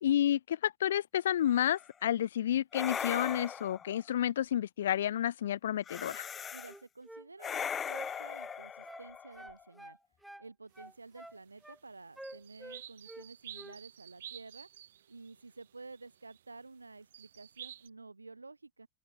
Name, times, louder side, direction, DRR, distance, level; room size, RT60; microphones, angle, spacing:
voice 1, 0.0-6.3, left 11 dB, 60° left, 0.6 m, -30 dB
sound 1, 1.5-1.8 2.7-4.0 5.9-6.7 7.4-9.6, left 7 dB, 20° left, 0.6 m, -39 dB
voice 2, 6.5-10.0 10.4-14.7 15.1-18.9, right 3 dB, 80° right, 3.9 m, -51 dB
sound 2, 6.6-7.3 7.5-9.1 9.3-10.5 10.7-11.8 12.2-13.3 13.5-13.8, right 1 dB, 5° right, 1.9 m, -49 dB
sound 3, 12.2-16.4 17.1-17.9, right 11 dB, 60° right, 1.5 m, -50 dB
open air
figure-of-eight pair, 90°, 0 cm